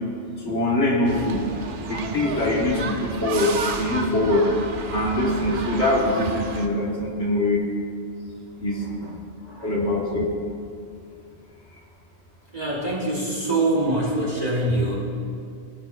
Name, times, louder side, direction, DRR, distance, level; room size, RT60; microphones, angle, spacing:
voice 1, 0.4-1.4 1.9-3.5 3.8-4.4 4.9-7.6 8.6-8.8 9.6-10.3, left 1 dB, 80° left, -3 dB, 1.7 m, -23 dB
sound 1, 1.0-6.7, right 4 dB, 55° right, 0.8 m, -32 dB
voice 2, 12.5-14.9, right 1 dB, 40° right, -4 dB, 1.2 m, -24 dB
16.0 x 6.9 x 2.4 m, 2.4 s
omnidirectional pair, 1.1 m